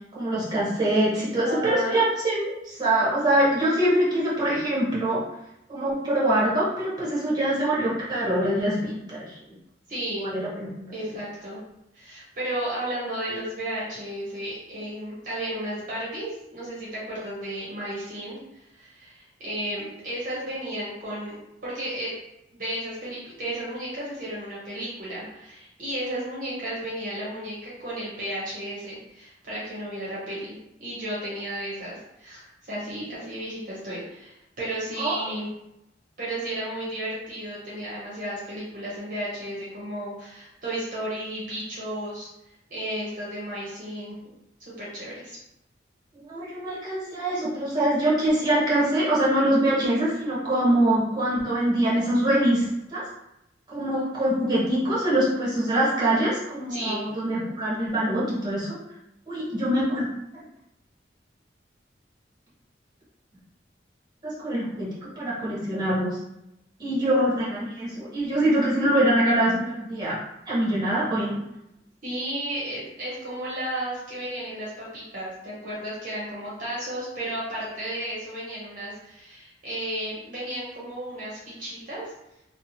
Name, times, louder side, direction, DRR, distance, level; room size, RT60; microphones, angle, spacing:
voice 1, 0.1-5.2 5.7-9.4 10.2-10.9 35.0-35.1 46.1-53.0 53.7-58.8 59.3-60.1 64.2-66.2 66.8-70.2 70.5-71.4, right 1 dB, 20° right, -8 dB, 1.0 m, -24 dB
voice 2, 1.4-2.0 9.9-10.3 10.9-11.6 11.9-21.4 21.6-22.2 22.5-30.5 30.8-35.5 36.2-42.3 42.7-44.2 44.6-45.4 56.7-57.1 72.0-82.1, right 1 dB, 45° right, -7 dB, 0.8 m, -33 dB
2.8 x 2.1 x 2.7 m, 0.88 s
head